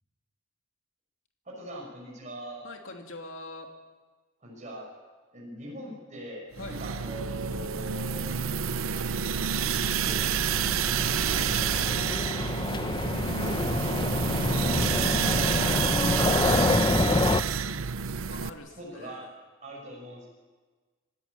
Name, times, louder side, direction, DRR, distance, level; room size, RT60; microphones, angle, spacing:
voice 1, 1.4-2.6 4.4-4.9 5.3-8.4 9.9-10.4 11.3-12.2 13.2-14.9 15.3-17.4 18.8-19.3 19.6-20.3, equal, 35° right, -2 dB, 6.1 m, -41 dB
voice 2, 2.6-3.7 6.6-6.8 17.0-17.3 18.3-19.3, left 2 dB, 70° left, 3 dB, 2.7 m, -43 dB
sound 1, 6.6-18.5, right 7 dB, 90° right, 0.7 m, -29 dB
sound 2, 9.5-17.4, left 2 dB, 25° left, 0.7 m, -28 dB
26.5 x 13.5 x 9.7 m, 1.4 s
head